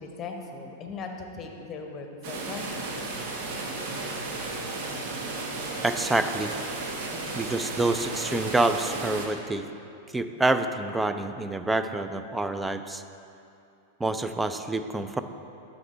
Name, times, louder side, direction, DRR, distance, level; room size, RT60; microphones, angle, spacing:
voice 1, 0.0-2.9 7.1-7.5, left 4 dB, 30° left, 3 dB, 0.9 m, -39 dB
sound 1, 2.2-9.3, right 3 dB, 55° right, 0.9 m, -34 dB
voice 2, 5.8-6.6 7.3-9.6 10.1-13.0 14.0-15.2, right 2 dB, 10° right, 9 dB, 0.4 m, -27 dB
9.8 x 4.2 x 4.4 m, 2.7 s
figure-of-eight pair, 95°, 0 cm